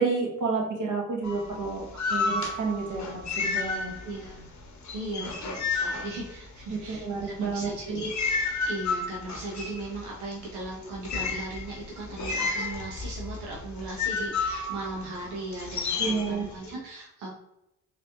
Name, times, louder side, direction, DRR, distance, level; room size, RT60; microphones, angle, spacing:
voice 1, 0.0-4.0 5.2-5.3 6.7-8.0 16.0-16.5, right 4 dB, 50° right, -1 dB, 1.2 m, -30 dB
sound 1, 1.2-4.3 4.6-6.9 7.5-16.7, left 4 dB, 45° left, 0.8 m, -31 dB
voice 2, 4.0-4.5 4.9-8.1 8.7-17.3, right 2 dB, 75° right, -3 dB, 0.7 m, -38 dB
3.9 x 3.0 x 2.4 m, 0.86 s
hypercardioid pair, 40°, 40 cm